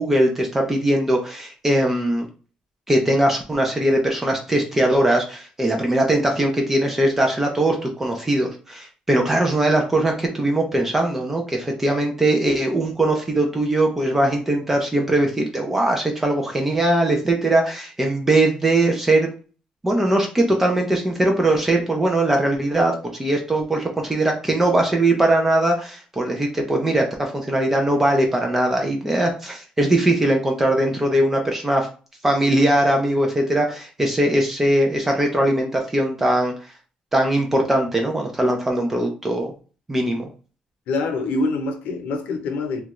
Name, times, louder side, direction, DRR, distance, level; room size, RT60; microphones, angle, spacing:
voice 1, 0.0-2.3 2.9-19.3 19.8-22.9 23.2-31.9 32.2-36.5 37.1-39.5 39.9-40.3, right 1 dB, 10° right, 0.5 m, -20 dB
voice 2, 40.9-42.8, left 3 dB, 90° left, 0.7 m, -25 dB
3.1 x 2.4 x 3.0 m
cardioid pair, 180°, 3 cm